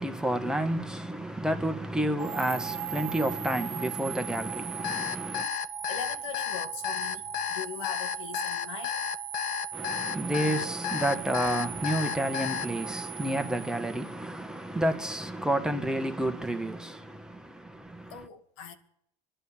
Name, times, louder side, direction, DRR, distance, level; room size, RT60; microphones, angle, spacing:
voice 1, 0.0-5.5 9.7-18.2, right 1 dB, 5° right, 1.3 m, -30 dB
sound 1, 2.2-14.4, right 9 dB, 40° right, 0.7 m, -39 dB
Alarm, 4.8-12.7, left 10 dB, 60° left, 0.8 m, -32 dB
voice 2, 5.8-9.1 18.1-18.7, left 7 dB, 85° left, 2.2 m, -40 dB
26.0 x 11.5 x 4.5 m
supercardioid pair, 110°, 15 cm